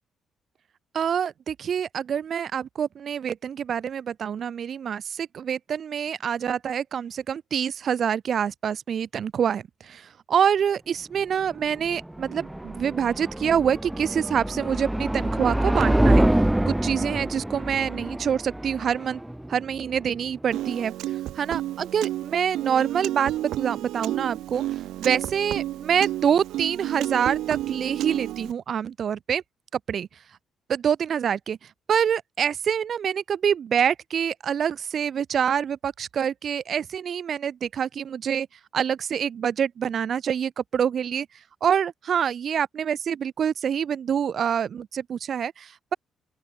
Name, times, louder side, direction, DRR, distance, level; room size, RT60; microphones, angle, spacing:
voice 1, 0.9-16.2 16.7-19.2 19.5-20.9 21.4-24.6 25.0-29.4 29.9-30.1 30.7-31.6 31.9-38.5 38.7-41.3 41.6-45.9, right 8 dB, 55° right, 1.1 m, -26 dB
sound 1, 11.5-20.5, right 1 dB, 5° right, 1.5 m, -26 dB
Piano, 20.5-28.5, right 14 dB, 85° right, 3.5 m, -31 dB
open air
cardioid pair, 90°, 0 cm